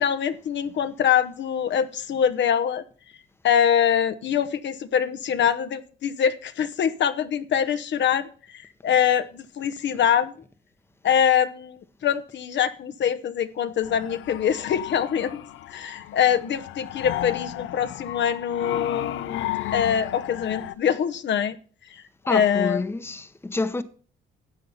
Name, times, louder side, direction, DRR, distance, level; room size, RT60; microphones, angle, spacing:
voice 1, 0.0-2.8 3.4-8.3 8.5-10.3 11.0-15.4 15.7-21.6 22.3-22.8, left 8 dB, 65° left, 1.0 m, -24 dB
sound 1, 13.8-20.7, left 14 dB, 80° left, 0.6 m, -34 dB
voice 2, 22.3-23.8, left 3 dB, 10° left, 0.9 m, -28 dB
12.5 x 7.6 x 5.6 m
cardioid pair, 90°, 20 cm